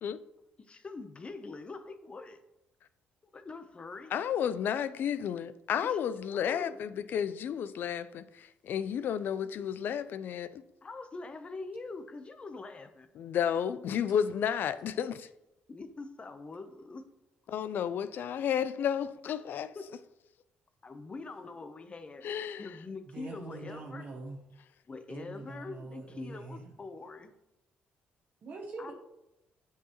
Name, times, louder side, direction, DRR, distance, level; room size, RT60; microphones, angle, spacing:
voice 1, 0.6-2.4 3.3-4.1 5.8-6.0 6.3-6.8 10.8-13.1 15.7-17.0 19.3-19.4 19.8-19.9 20.8-22.2 22.6-24.1 24.9-27.3 28.8-28.9, left 3 dB, 30° left, 0.7 m, -44 dB
voice 2, 4.1-10.6 13.2-15.3 17.5-19.7 22.2-22.7, left 8 dB, 60° left, 0.4 m, -32 dB
voice 3, 23.1-24.4 25.1-26.7 28.4-28.9, right 3 dB, 50° right, 0.9 m, -43 dB
8.1 x 4.7 x 2.9 m
cardioid pair, 100°, 4 cm